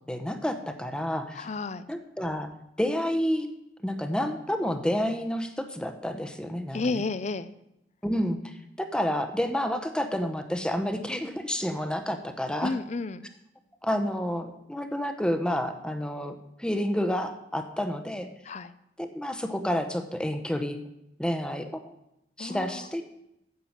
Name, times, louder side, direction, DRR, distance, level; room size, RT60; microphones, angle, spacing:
voice 1, 0.1-1.5 1.9-2.5 2.8-3.5 3.8-7.0 8.0-12.8 13.8-18.3 19.0-20.8 21.2-21.9 22.4-23.0, equal, 5° left, 7 dB, 0.9 m, -29 dB
voice 2, 1.4-1.8 6.7-7.5 12.6-13.3 18.5-18.7 22.4-22.8, left 3 dB, 40° left, 15 dB, 0.5 m, -31 dB
9.4 x 7.5 x 7.3 m, 0.84 s
head